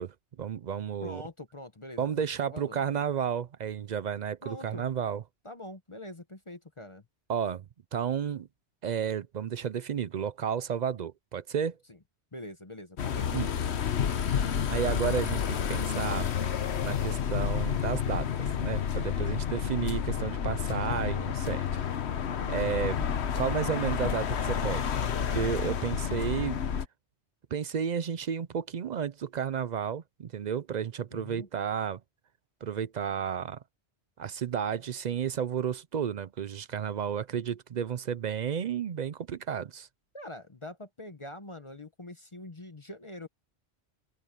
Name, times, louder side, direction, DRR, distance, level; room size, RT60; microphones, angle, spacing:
voice 1, 0.0-1.2 2.0-5.2 7.3-7.6 7.9-8.5 8.8-11.8 13.3-13.5 14.3-16.3 16.8-21.9 22.5-23.1 23.3-25.0 25.3-26.6 27.5-32.0 32.6-33.6 34.2-39.9, right 8 dB, 50° right, 0.5 m, -32 dB
voice 2, 1.0-2.9 4.4-4.9 5.4-7.0 11.9-12.0 12.3-13.5 31.1-31.5 40.1-43.3, left 1 dB, 30° left, 1.0 m, -44 dB
sound 1, 13.0-26.9, left 8 dB, 70° left, 1.2 m, -30 dB
open air
omnidirectional pair, 1.2 m